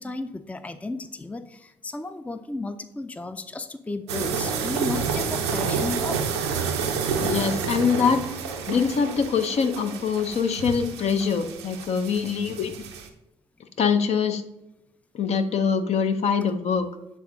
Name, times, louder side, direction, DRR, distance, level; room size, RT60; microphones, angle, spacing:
voice 1, 0.0-6.2, left 2 dB, 10° left, 11 dB, 0.4 m, -34 dB
sound 1, 4.1-13.1, right 6 dB, 85° right, 0.5 m, -29 dB
voice 2, 7.2-8.2 8.7-12.7 13.8-14.4 15.1-16.9, left 6 dB, 55° left, 8 dB, 0.6 m, -24 dB
7.7 x 3.6 x 3.7 m, 0.92 s
hypercardioid pair, 40°, 13 cm